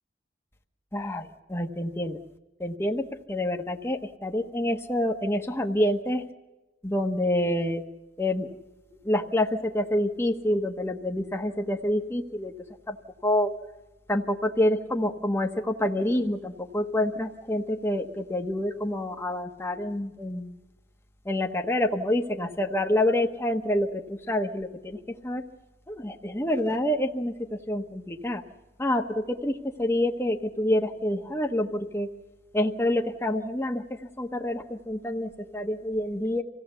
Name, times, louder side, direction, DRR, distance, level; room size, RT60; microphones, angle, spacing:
voice 1, 0.9-2.2 2.6-6.2 6.8-7.8 8.2-8.5 9.0-12.5 12.9-13.0 13.2-13.5 14.1-20.5 21.2-25.4 25.9-28.4 28.8-32.1 32.5-36.4, left 1 dB, 15° left, 2 dB, 1.2 m, -27 dB
26.0 x 17.0 x 6.9 m, 1.1 s
head